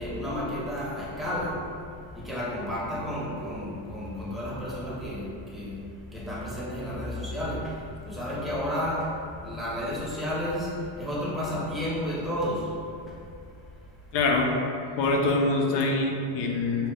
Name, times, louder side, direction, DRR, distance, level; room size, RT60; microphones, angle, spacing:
voice 1, 0.0-1.6 2.1-9.1 9.4-12.7 13.1-13.2, equal, ahead, -9 dB, 0.5 m, -32 dB
voice 2, 14.1-14.5 15.0-16.9, left 2 dB, 60° left, 1 dB, 0.5 m, -24 dB
2.7 x 2.0 x 3.7 m, 2.5 s
cardioid pair, 140°, 47 cm